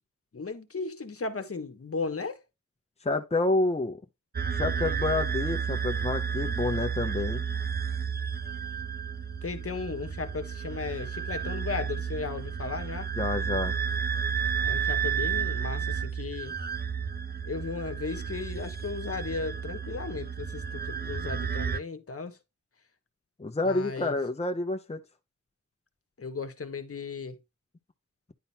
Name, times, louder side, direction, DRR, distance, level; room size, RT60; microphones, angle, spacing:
voice 1, 0.3-2.4 9.4-13.1 14.6-16.5 17.4-22.4 23.6-24.1 26.2-27.4, left 4 dB, 50° left, 1.4 m, -35 dB
voice 2, 3.0-4.0 4.5-7.4 13.2-13.8 23.4-25.0, left 2 dB, 20° left, 1.0 m, -28 dB
sound 1, 4.3-21.8, right 7 dB, 35° right, 0.7 m, -32 dB
10.5 x 3.9 x 4.2 m
wide cardioid pair, 75°, 29 cm